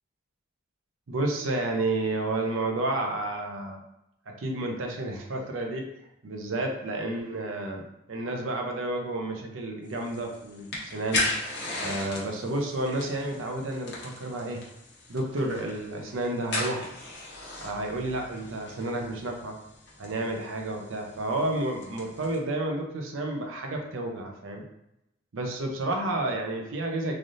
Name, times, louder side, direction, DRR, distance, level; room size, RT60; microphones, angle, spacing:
voice 1, 1.1-3.8 4.3-5.9 6.2-7.8 8.1-11.3 11.8-14.6 15.1-16.9 17.6-19.6 20.0-24.6 25.3-27.1, right 2 dB, 90° right, 2 dB, 0.6 m, -31 dB
sound 1, 9.9-22.4, left 2 dB, 60° left, 0.9 m, -37 dB
3.3 x 2.4 x 2.6 m, 0.85 s
head